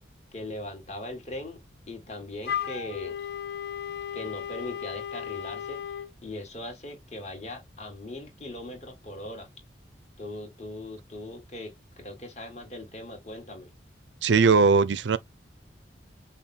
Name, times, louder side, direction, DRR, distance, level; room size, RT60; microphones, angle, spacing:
voice 1, 0.3-1.6 1.9-3.2 4.1-5.8 6.2-9.5 10.2-13.7, left 1 dB, 35° left, 1.8 m, -39 dB
Wind instrument woodwind instrument, 2.4-6.1, left 9 dB, 55° left, 0.5 m, -35 dB
voice 2, 14.2-15.2, right 4 dB, 80° right, 0.5 m, -19 dB
5.6 x 2.2 x 4.3 m
head